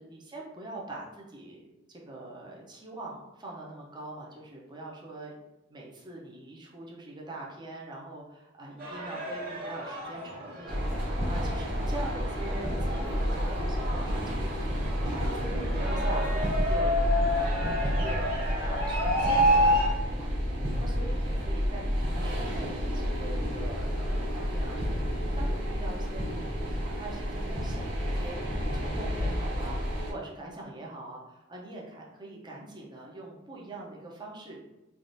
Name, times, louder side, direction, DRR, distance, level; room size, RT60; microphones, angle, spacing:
voice 1, 0.0-5.3 5.7-20.4 20.7-25.1 25.3-34.6, right 2 dB, 25° right, -3 dB, 0.6 m, -43 dB
sound 1, 8.8-19.9, equal, 50° right, 1.2 m, -30 dB
sound 2, 10.7-30.1, equal, 85° right, 1.2 m, -30 dB
3.4 x 2.4 x 2.6 m, 0.95 s
head